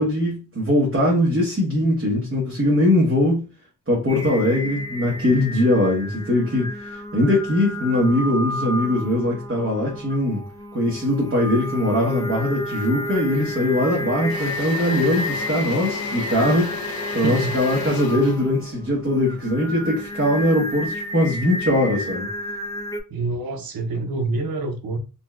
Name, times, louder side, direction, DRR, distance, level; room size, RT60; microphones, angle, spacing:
voice 1, 0.0-3.4 3.9-10.4 10.7-22.3, left 1 dB, 35° right, 1.1 m, -21 dB
Singing, 4.1-23.0, equal, 10° left, 0.4 m, -31 dB
Engine / Drill, 13.3-13.6 13.9-20.0, left 6 dB, 85° left, 0.5 m, -35 dB
voice 2, 17.1-17.6 23.1-25.0, right 3 dB, 80° right, 0.7 m, -27 dB
3.8 x 2.2 x 2.4 m
wide cardioid pair, 115°, 35 cm